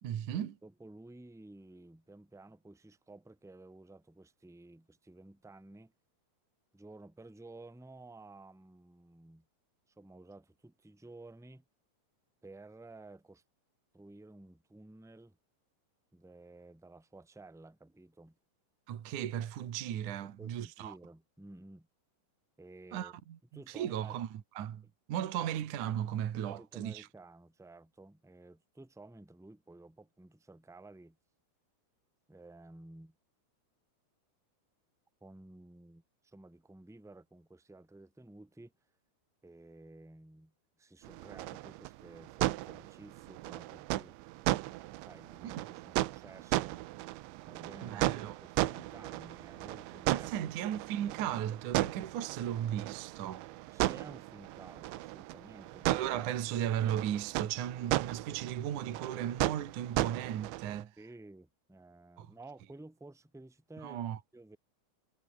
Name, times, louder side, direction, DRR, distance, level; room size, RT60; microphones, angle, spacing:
voice 1, 0.0-0.6 18.9-20.9 22.9-23.4 23.7-24.8 25.1-27.1 45.4-45.5 47.8-48.4 50.1-53.5 55.9-60.9 62.2-62.3 63.8-64.2, right 10 dB, 55° right, 2.5 m, -36 dB
voice 2, 0.6-5.9 6.7-9.4 10.0-11.6 12.4-13.4 13.9-15.4 16.1-18.3 20.2-21.9 22.6-23.2 23.5-24.2 24.8-24.9 25.4-25.5 26.5-31.2 32.3-33.1 35.2-38.7 39.4-40.5 40.8-44.2 45.0-46.7 47.4-48.1 48.4-50.7 53.7-56.1 61.0-64.6, right 2 dB, ahead, 2.2 m, -53 dB
sound 1, 41.0-60.8, right 18 dB, 80° right, 3.0 m, -36 dB
omnidirectional pair, 5.6 m